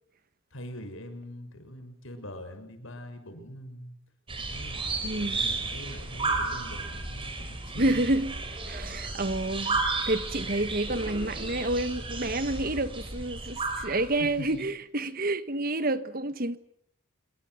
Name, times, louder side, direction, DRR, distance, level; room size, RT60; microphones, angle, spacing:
voice 1, 0.5-3.9 4.5-8.1 14.2-14.7, equal, 75° left, 6.2 m, -43 dB
sound 1, 4.3-14.6, right 3 dB, 25° right, 5.2 m, -33 dB
voice 2, 5.0-5.4 7.8-8.4 8.7-16.6, right 2 dB, 45° right, 1.4 m, -29 dB
27.0 x 24.0 x 7.9 m
head